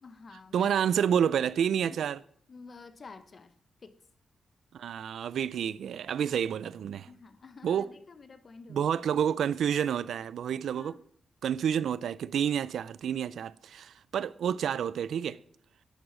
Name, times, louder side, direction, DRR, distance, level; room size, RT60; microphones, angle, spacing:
voice 1, 0.0-0.7 1.8-2.0 2.5-3.5 3.8-4.0 7.1-8.9 10.6-11.0, left 4 dB, 35° left, 1.0 m, -50 dB
voice 2, 0.5-2.2 4.7-7.1 7.6-7.9 8.7-10.9 11.4-15.4, right 8 dB, 75° right, 0.5 m, -29 dB
12.0 x 7.9 x 8.7 m
wide cardioid pair, 175°, 0 cm